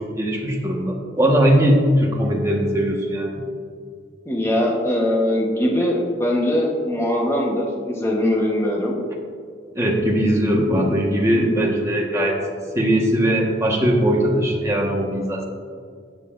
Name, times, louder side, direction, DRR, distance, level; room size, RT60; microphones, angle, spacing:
voice 1, 0.0-3.4 9.7-12.4 12.7-15.5, equal, 15° right, -1 dB, 1.4 m, -20 dB
voice 2, 4.2-8.9 10.8-10.9 11.3-11.6, left 1 dB, 15° left, -2 dB, 1.1 m, -21 dB
14.5 x 9.1 x 2.6 m, 2.1 s
head